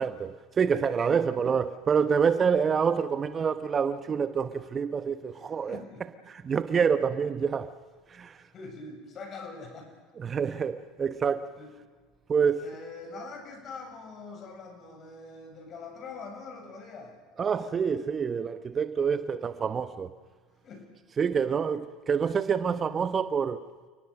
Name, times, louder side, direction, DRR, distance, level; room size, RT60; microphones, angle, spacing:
voice 1, 0.0-5.8 6.3-7.7 8.1-8.4 10.2-11.5 12.3-12.7 17.4-20.1 21.2-23.6, right 6 dB, 30° right, 1.0 m, -27 dB
voice 2, 5.3-6.0 8.5-10.0 11.6-11.7 12.6-17.2 20.6-20.9, left 4 dB, 40° left, 7.4 m, -43 dB
30.0 x 18.5 x 6.5 m
hypercardioid pair, 85°, 0 cm